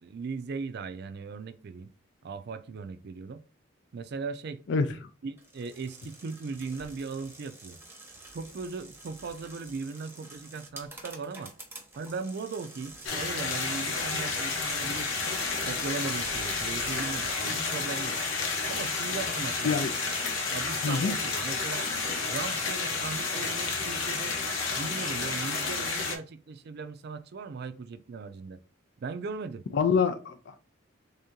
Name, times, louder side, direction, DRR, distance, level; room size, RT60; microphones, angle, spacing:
voice 1, 0.0-1.9 2.2-3.4 3.9-4.6 5.2-7.8 8.3-11.5 12.0-15.3 15.7-18.2 18.6-19.9 20.5-21.9 22.3-24.4 24.8-28.6 29.0-29.6, right 4 dB, 55° right, 0.4 m, -38 dB
voice 2, 4.7-5.1 19.6-19.9 20.8-21.1 29.7-30.6, left 5 dB, 65° left, 0.4 m, -26 dB
sound 1, 5.4-17.4, right 2 dB, 10° right, 0.8 m, -47 dB
sound 2, 13.0-26.1, left 4 dB, 85° left, 1.0 m, -31 dB
3.6 x 2.7 x 3.6 m
head